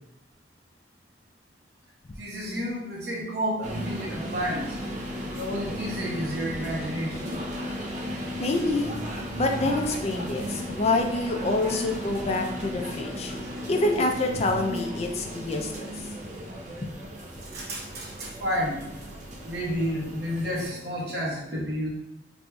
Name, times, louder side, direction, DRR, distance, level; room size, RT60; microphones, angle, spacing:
voice 1, 2.2-4.8 5.1-7.4 9.6-9.7 11.6-11.8 13.4-13.5 17.4-18.8 19.4-21.9, equal, 60° right, -3 dB, 0.9 m, -31 dB
sound 1, 3.6-20.7, equal, 40° right, 0.5 m, -35 dB
voice 2, 8.4-8.9 9.4-13.3 13.7-15.9 16.8-16.9, left 2 dB, 35° left, 3 dB, 0.3 m, -26 dB
4.5 x 2.5 x 2.2 m, 0.86 s
head